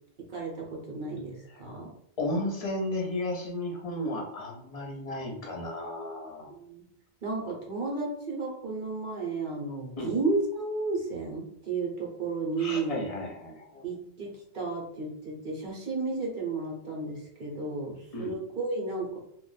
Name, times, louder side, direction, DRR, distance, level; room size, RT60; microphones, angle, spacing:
voice 1, 0.3-1.9 6.5-6.8 7.2-13.0 13.8-19.2, right 3 dB, 55° right, -1 dB, 1.0 m, -33 dB
voice 2, 2.2-6.5 10.0-10.1 12.6-13.8 18.1-18.4, left 1 dB, 40° left, -1 dB, 0.8 m, -34 dB
2.5 x 2.2 x 3.9 m, 0.73 s
omnidirectional pair, 1.0 m